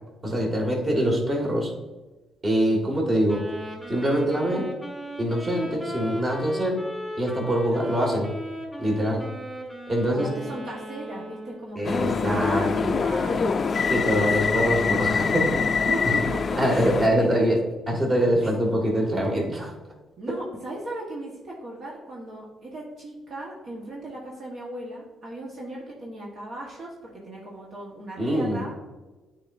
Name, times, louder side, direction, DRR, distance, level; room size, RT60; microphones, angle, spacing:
voice 1, 0.2-1.7 2.4-3.4 3.9-4.8 5.2-6.8 7.2-8.3 8.8-9.2 9.9-10.3 11.8-12.9 13.9-15.5 15.7-16.2 16.6-17.6 17.9-19.7 28.2-28.6, equal, 30° right, 0 dB, 2.1 m, -24 dB
Wind instrument woodwind instrument, 3.3-11.8, equal, 10° right, 1.9 m, -37 dB
voice 2, 10.1-13.6 15.8-17.5 18.4-18.5 20.2-28.7, right 1 dB, 60° right, -3 dB, 1.4 m, -37 dB
sound 1, 11.8-17.1, left 5 dB, 40° left, 0.4 m, -24 dB
8.9 x 4.6 x 2.7 m, 1.2 s
cardioid pair, 90°, 0 cm